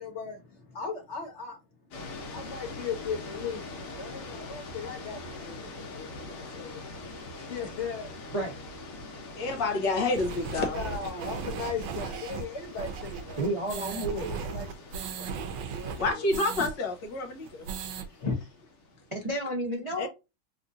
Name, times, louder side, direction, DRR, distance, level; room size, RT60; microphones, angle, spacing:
voice 1, 0.0-1.6 2.3-7.1 7.4-8.2 10.7-13.4 13.8-14.7 14.9-15.3 15.7-16.2 18.2-18.5, left 5 dB, 45° left, 0.9 m, -37 dB
sound 1, 1.9-19.2, left 2 dB, 90° left, 1.9 m, -44 dB
voice 2, 9.3-10.8 16.0-17.6 20.0-20.1, left 2 dB, 65° left, 1.4 m, -28 dB
sound 2, 10.1-16.7 17.0-17.1 17.4-18.1, right 6 dB, 70° right, 1.2 m, -37 dB
voice 3, 13.4-14.3 19.1-20.1, right 1 dB, 55° right, 0.3 m, -31 dB
4.2 x 2.4 x 2.6 m
omnidirectional pair, 2.3 m